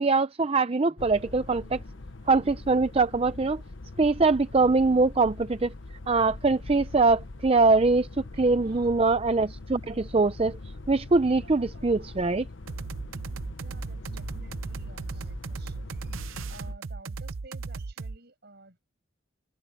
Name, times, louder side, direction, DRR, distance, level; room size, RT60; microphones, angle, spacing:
voice 1, 0.0-1.8 2.3-3.6 4.0-5.7 6.1-10.6 10.9-12.4, right 3 dB, 30° right, 0.5 m, -23 dB
sound 1, 1.0-16.7, left 2 dB, 65° left, 0.9 m, -42 dB
voice 2, 8.3-9.0 11.3-12.5 13.6-18.8, right 3 dB, 55° right, 7.1 m, -53 dB
sound 2, 12.7-18.2, right 4 dB, 85° right, 0.7 m, -36 dB
head